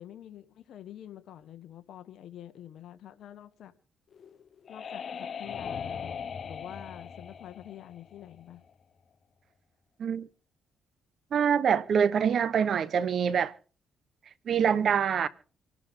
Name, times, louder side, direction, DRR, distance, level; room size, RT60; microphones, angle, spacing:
voice 1, 0.0-3.7 4.7-6.1 6.4-8.6, left 11 dB, 70° left, 1.6 m, -47 dB
sound 1, 4.1-8.7, left 7 dB, 50° left, 1.2 m, -39 dB
voice 2, 11.3-13.5 14.5-15.3, right 7 dB, 60° right, 1.1 m, -25 dB
26.5 x 12.0 x 3.8 m
cardioid pair, 90°, 0 cm